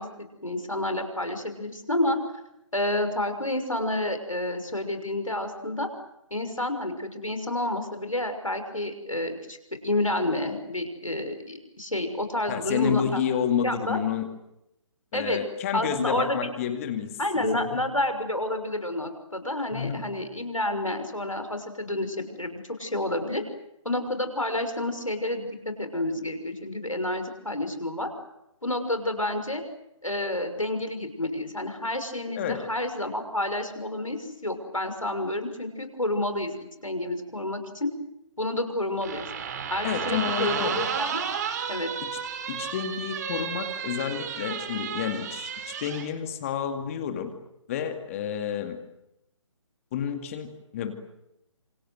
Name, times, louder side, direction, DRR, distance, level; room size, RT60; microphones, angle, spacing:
voice 1, 0.0-2.2 2.7-5.9 6.3-13.2 13.6-14.0 15.1-15.4 15.7-16.5 17.2-23.4 23.8-28.1 28.6-29.6 30.0-37.9 38.4-39.3 39.7-41.2 41.7-41.9, left 1 dB, 90° left, 8 dB, 6.1 m, -29 dB
voice 2, 12.5-14.3 15.1-17.4 17.7-17.8 19.7-20.1 32.4-32.6 39.8-40.8 42.0-42.1 42.5-47.3 47.7-48.8 49.9-50.9, left 8 dB, 25° left, 6 dB, 2.3 m, -30 dB
sound 1, 39.0-46.1, right 7 dB, 35° right, 3.4 m, -32 dB
27.0 x 26.0 x 8.1 m, 0.85 s
figure-of-eight pair, 145°, 16 cm